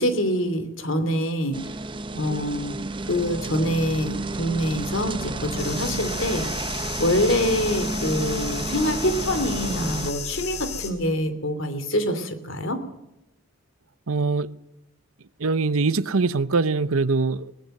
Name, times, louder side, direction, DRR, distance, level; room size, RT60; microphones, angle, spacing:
voice 1, 0.0-1.8 2.1-12.8, equal, 65° left, 2.9 m, -25 dB
sound 1, 1.5-10.1, right 2 dB, 20° right, 0.9 m, -31 dB
sound 2, 5.6-10.9, left 6 dB, 85° left, 4.4 m, -34 dB
voice 2, 14.1-14.5 15.4-17.6, right 3 dB, 80° right, 0.9 m, -23 dB
21.0 x 19.0 x 6.6 m
head